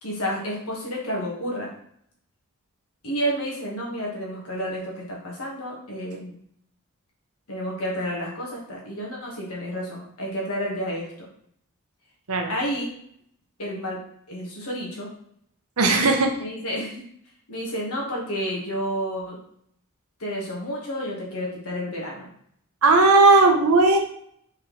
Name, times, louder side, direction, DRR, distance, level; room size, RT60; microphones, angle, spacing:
voice 1, 0.0-1.7 3.0-6.4 7.5-11.3 12.5-12.9 13.6-14.0 14.3-15.1 16.4-17.0 17.5-19.4 20.2-22.3, equal, 80° left, -3 dB, 1.5 m, -30 dB
voice 2, 15.8-16.3 22.8-24.0, right 3 dB, 75° right, 3 dB, 0.8 m, -16 dB
4.5 x 3.7 x 3.1 m, 0.68 s
head